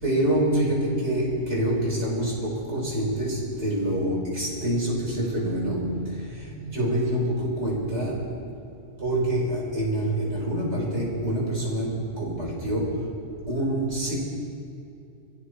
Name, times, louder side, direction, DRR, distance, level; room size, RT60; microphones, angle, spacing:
voice 1, 0.0-5.9 6.3-8.2 9.0-13.0 13.5-14.1, right 1 dB, 50° right, -5 dB, 5.2 m, -26 dB
26.0 x 15.5 x 3.2 m, 2.5 s
omnidirectional pair, 1.5 m